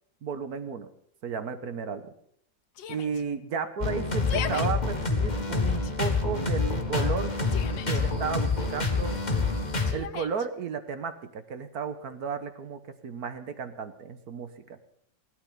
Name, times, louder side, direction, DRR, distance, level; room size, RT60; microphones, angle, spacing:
voice 1, 0.2-0.9 1.2-2.1 2.9-7.3 7.9-9.2 9.9-14.8, right 6 dB, 55° right, 10 dB, 1.6 m, -34 dB
Yell, 2.8-3.2 4.1-4.7 5.4-5.9 7.1-8.0 9.9-10.5, left 9 dB, 80° left, 1.5 m, -37 dB
sound 1, 3.8-9.9, left 3 dB, 25° left, 1.8 m, -27 dB
16.5 x 13.0 x 5.6 m, 0.67 s
omnidirectional pair, 2.0 m